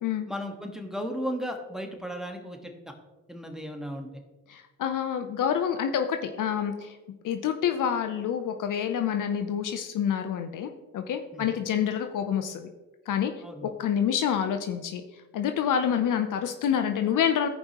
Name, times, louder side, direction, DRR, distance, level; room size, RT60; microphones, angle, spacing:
voice 1, 0.3-2.7 3.3-4.1 11.3-11.5 13.4-13.7, equal, ahead, 3 dB, 1.6 m, -35 dB
voice 2, 4.5-7.0 7.2-12.7 13.1-13.3 13.6-15.0 15.3-17.5, left 8 dB, 55° left, 7 dB, 0.8 m, -27 dB
14.5 x 5.3 x 3.1 m, 1.2 s
hypercardioid pair, 55°, 37 cm